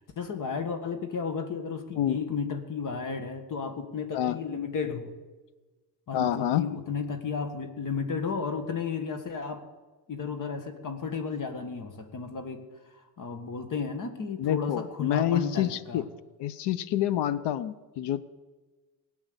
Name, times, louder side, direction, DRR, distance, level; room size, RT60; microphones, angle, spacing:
voice 1, 0.2-5.1 6.1-9.6 10.1-12.6 13.0-16.0, left 5 dB, 50° left, 7 dB, 1.7 m, -33 dB
voice 2, 6.1-6.6 14.4-16.0 16.4-18.2, left 11 dB, 90° left, 16 dB, 0.8 m, -27 dB
18.5 x 8.7 x 8.1 m, 1.3 s
cardioid pair, 145°, 40 cm